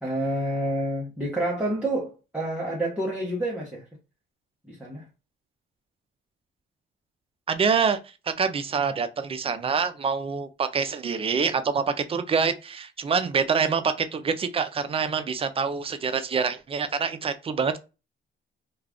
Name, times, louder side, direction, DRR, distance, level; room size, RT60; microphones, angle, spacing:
voice 1, 0.0-3.8 4.7-5.1, right 1 dB, 5° right, 0.8 m, -28 dB
voice 2, 7.5-8.0 8.3-11.8 12.1-17.8, right 5 dB, 30° right, 0.4 m, -26 dB
2.4 x 2.3 x 3.4 m
cardioid pair, 90°, 20 cm